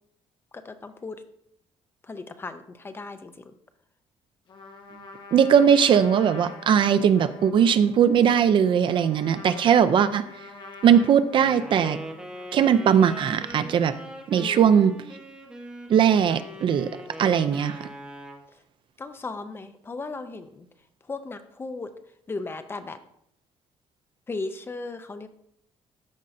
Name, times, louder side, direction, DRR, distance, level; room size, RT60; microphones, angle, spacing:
voice 1, 0.5-1.2 2.0-3.3 14.4-14.8 19.0-20.7 21.1-21.9 22.3-23.0 24.3-25.3, left 3 dB, 20° left, 10 dB, 0.5 m, -36 dB
Trumpet, 4.5-12.6, left 3 dB, 40° left, 1.0 m, -46 dB
voice 2, 5.3-10.2 10.8-12.0 12.5-13.9 14.3-14.9 15.9-16.9 17.2-17.9, right 8 dB, 45° right, 12 dB, 0.4 m, -19 dB
Wind instrument woodwind instrument, 11.3-18.4, equal, 10° right, 1.1 m, -41 dB
14.0 x 5.3 x 2.6 m, 0.73 s
cardioid pair, 160°, 11 cm